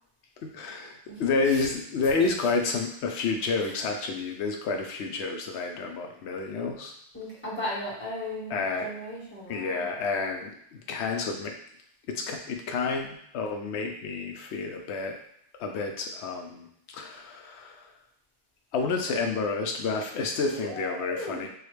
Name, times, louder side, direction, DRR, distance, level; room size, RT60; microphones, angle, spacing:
voice 1, 0.4-6.9 8.5-8.9 9.5-11.5 12.1-15.2 15.6-16.7 16.9-17.9 18.7-21.5, left 4 dB, 85° left, 3 dB, 0.9 m, -30 dB
voice 2, 1.1-1.7 2.2-2.3 3.6-3.7 7.1-9.9 20.5-21.4, equal, 10° left, -9 dB, 1.5 m, -36 dB
4.7 x 2.3 x 3.2 m, 0.70 s
omnidirectional pair, 1.1 m